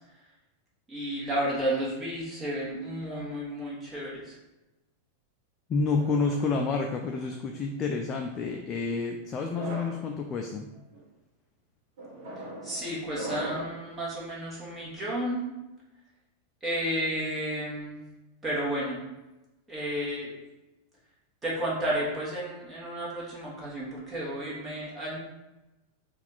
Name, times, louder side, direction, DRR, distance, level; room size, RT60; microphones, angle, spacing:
voice 1, 0.9-4.4 12.6-15.5 16.6-18.0 18.4-19.0 19.7-20.3 21.4-25.2, right 1 dB, 15° right, -6 dB, 1.3 m, -32 dB
voice 2, 5.7-10.7, left 4 dB, 30° left, 3 dB, 0.3 m, -29 dB
sound 1, 5.9-7.3 8.1-8.5 9.3-10.0 10.7-11.0 12.0-13.8, right 2 dB, 55° right, 1.3 m, -41 dB
4.2 x 2.4 x 3.8 m, 1.0 s
figure-of-eight pair, 90°, 0 cm